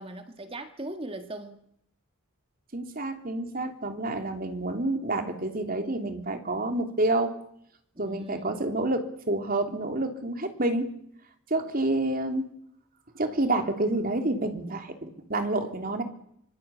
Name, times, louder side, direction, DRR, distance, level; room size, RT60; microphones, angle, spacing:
voice 1, 0.0-1.7 8.0-8.6, right 1 dB, 25° right, 1.8 m, -39 dB
voice 2, 2.7-7.3 8.0-10.9 11.5-12.5 13.1-16.0, right 2 dB, 40° right, 3.3 m, -28 dB
25.5 x 22.5 x 8.5 m
head